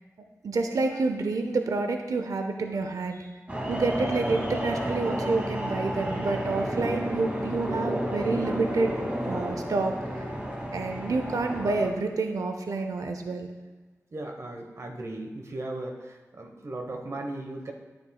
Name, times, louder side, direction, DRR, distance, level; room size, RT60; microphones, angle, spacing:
voice 1, 0.4-3.3 3.7-9.9 10.7-13.5, right 3 dB, 85° right, 5 dB, 0.6 m, -28 dB
sound 1, 3.5-11.9, equal, 25° right, 1.9 m, -31 dB
voice 2, 14.1-17.7, right 2 dB, 55° right, 3 dB, 1.2 m, -37 dB
9.4 x 9.4 x 2.3 m, 1.2 s
cardioid pair, 50°, 6 cm